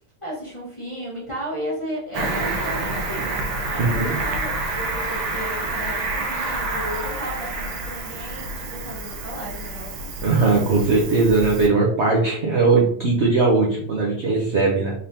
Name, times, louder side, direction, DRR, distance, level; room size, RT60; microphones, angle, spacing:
voice 1, 0.2-10.1, equal, 20° left, -7 dB, 1.0 m, -34 dB
Cricket, 2.1-11.7, right 2 dB, 85° right, 1.5 m, -28 dB
voice 2, 3.8-4.1 10.2-14.9, right 3 dB, 65° right, -2 dB, 0.6 m, -19 dB
4.0 x 3.5 x 2.7 m, 0.63 s
omnidirectional pair, 2.1 m